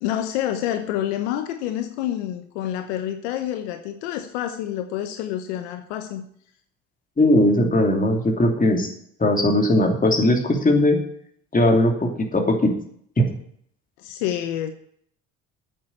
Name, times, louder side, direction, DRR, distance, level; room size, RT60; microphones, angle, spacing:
voice 1, 0.0-6.2 14.0-14.7, left 11 dB, 85° left, 8 dB, 1.0 m, -28 dB
voice 2, 7.2-8.9 9.2-11.0 11.5-12.7 13.2-13.3, left 1 dB, 25° left, 2 dB, 2.8 m, -19 dB
8.5 x 7.2 x 8.4 m, 0.65 s
hypercardioid pair, 65°, 34 cm